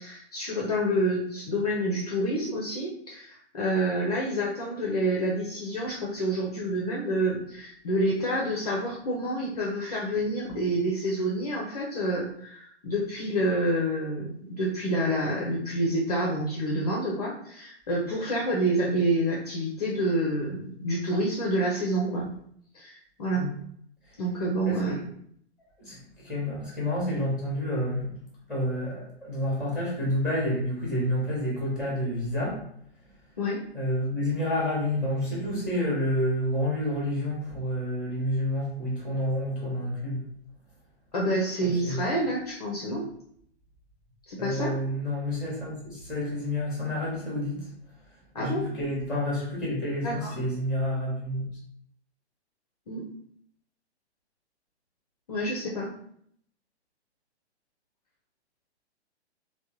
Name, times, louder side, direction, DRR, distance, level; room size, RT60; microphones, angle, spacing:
voice 1, 0.0-22.3 22.7-23.4 24.2-25.0 33.4-33.6 41.1-43.1 44.3-44.7 48.3-48.7 50.0-50.4 52.9-53.0 55.3-55.9, right 1 dB, 35° left, -3 dB, 0.5 m, -28 dB
voice 2, 24.6-25.0 25.8-28.1 28.5-32.6 33.7-40.2 41.6-42.1 44.4-47.7 48.4-51.5, left 1 dB, ahead, -4 dB, 0.8 m, -29 dB
3.4 x 2.1 x 2.9 m, 0.66 s
figure-of-eight pair, 125°, 34 cm